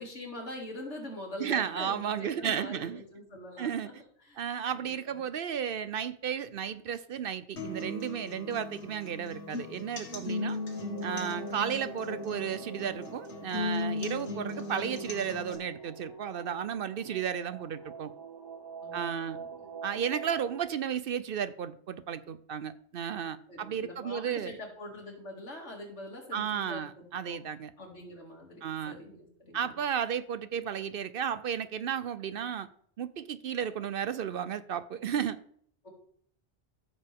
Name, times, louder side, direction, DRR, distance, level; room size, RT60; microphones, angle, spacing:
voice 1, 0.0-3.9 4.2-4.4 4.7-5.2 18.8-19.7 23.5-27.4 27.8-29.8 35.8-35.9, left 1 dB, 90° left, 2.9 m, -44 dB
voice 2, 1.4-3.0 3.6-3.9 4.4-10.6 11.0-18.1 18.9-19.4 19.8-24.5 26.3-27.7 28.6-29.0 29.5-32.7 33.0-35.4, right 8 dB, 60° right, 0.7 m, -33 dB
sound 1, 7.6-15.5, left 2 dB, 75° left, 1.9 m, -37 dB
sound 2, 10.0-20.7, right 4 dB, 25° right, 1.0 m, -45 dB
14.0 x 6.7 x 3.5 m
omnidirectional pair, 1.2 m